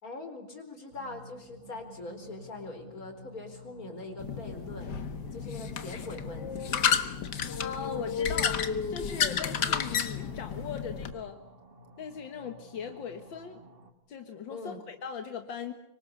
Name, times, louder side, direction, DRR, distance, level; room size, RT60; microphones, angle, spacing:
voice 1, 0.0-4.9 5.3-6.8 14.5-14.8, left 2 dB, 50° left, 5 dB, 4.8 m, -42 dB
sound 1, 0.9-13.9, equal, 30° right, 2.2 m, -53 dB
sound 2, 4.2-11.1, left 7 dB, 65° left, 1.9 m, -31 dB
voice 2, 7.6-8.6 8.9-11.4 12.0-13.6 14.1-15.7, left 7 dB, 85° left, 6 dB, 2.3 m, -39 dB
25.5 x 24.5 x 8.2 m, 0.75 s
omnidirectional pair, 2.0 m